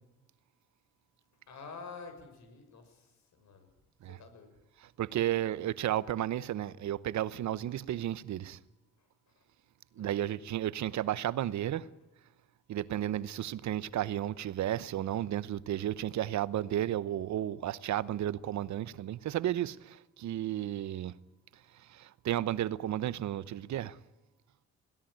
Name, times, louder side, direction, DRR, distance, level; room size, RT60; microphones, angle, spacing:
voice 1, 1.5-3.1 3.4-3.7 4.1-4.5 9.9-10.1, left 4 dB, 65° left, 6.7 m, -48 dB
voice 2, 4.8-8.6 10.0-11.9 12.7-21.2 21.8-24.0, right 12 dB, 70° right, 0.9 m, -33 dB
22.0 x 16.5 x 9.2 m
cardioid pair, 90°, 30 cm